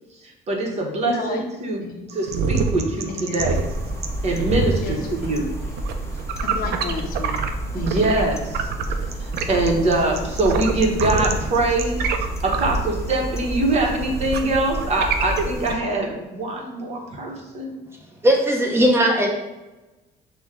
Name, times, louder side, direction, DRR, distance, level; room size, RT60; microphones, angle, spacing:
voice 1, 0.5-3.6 4.2-5.5 7.7-8.7 9.2-12.0 12.4-17.7, right 2 dB, 40° right, 0 dB, 1.0 m, -23 dB
voice 2, 1.1-1.4 1.8-2.0 3.1-3.4 4.7-5.4 6.4-7.5 7.7-8.1, left 4 dB, 55° left, 1 dB, 0.6 m, -32 dB
sound 1, 2.1-8.2 8.5-15.8, right 5 dB, 75° right, 0.5 m, -27 dB
sound 2, 3.5-15.7, right 2 dB, 15° left, 0.6 m, -30 dB
voice 3, 18.2-19.3, equal, 15° right, 0 dB, 0.9 m, -17 dB
6.1 x 2.2 x 3.6 m, 1.1 s
cardioid pair, 110°, 17 cm